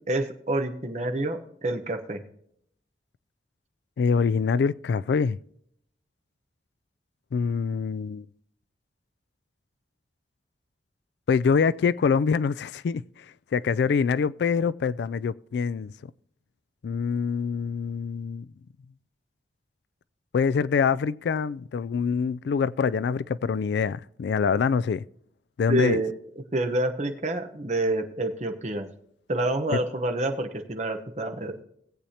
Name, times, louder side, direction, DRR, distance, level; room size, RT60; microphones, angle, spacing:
voice 1, 0.1-2.2 25.7-26.1 26.5-28.9 29.3-31.5, right 1 dB, 40° right, 1.0 m, -28 dB
voice 2, 4.0-5.4 7.3-8.3 11.3-13.2 13.5-15.9 16.8-18.5 20.3-25.0 25.6-26.0 29.7-29.8, left 6 dB, 70° left, 0.3 m, -25 dB
18.0 x 8.4 x 2.8 m
head